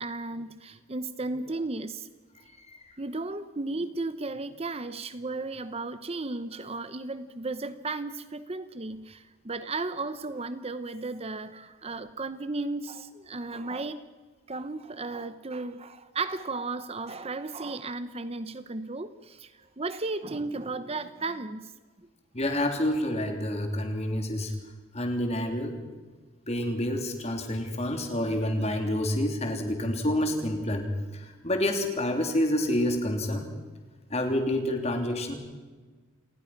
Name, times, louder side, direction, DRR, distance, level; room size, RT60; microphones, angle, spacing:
voice 1, 0.0-2.1 3.0-14.0 14.5-19.5 19.8-21.7, right 3 dB, 30° right, 12 dB, 0.8 m, -34 dB
voice 2, 22.3-24.5 24.9-25.8 26.5-30.9 31.1-33.5 34.1-35.4, left 1 dB, 30° left, 4 dB, 3.3 m, -28 dB
28.5 x 19.5 x 5.9 m, 1.4 s
head